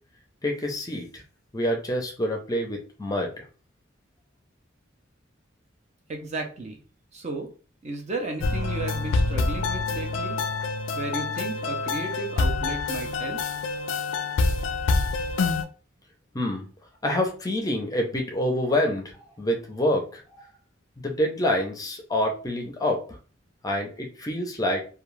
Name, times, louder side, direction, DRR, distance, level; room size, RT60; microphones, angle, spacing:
voice 1, 0.4-1.2 1.5-3.4 16.3-16.6 17.0-19.1 19.4-20.4 21.0-23.0 23.6-24.9, left 1 dB, 20° left, 2 dB, 0.5 m, -27 dB
voice 2, 6.1-6.8 7.1-7.5 7.8-10.4 10.9-13.4, right 3 dB, 35° right, 3 dB, 0.5 m, -34 dB
sound 1, 8.4-15.6, left 3 dB, 85° left, 0.4 m, -26 dB
2.3 x 2.3 x 3.1 m, 0.37 s
head